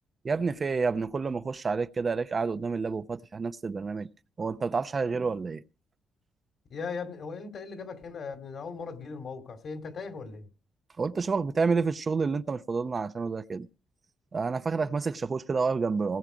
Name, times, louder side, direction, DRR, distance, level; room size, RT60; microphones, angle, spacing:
voice 1, 0.2-4.1 4.4-5.6 11.0-13.7 14.3-16.2, right 4 dB, 35° right, 0.7 m, -29 dB
voice 2, 6.7-10.5, left 5 dB, 60° left, 2.5 m, -38 dB
18.5 x 7.3 x 5.1 m
cardioid pair, 85°, 0 cm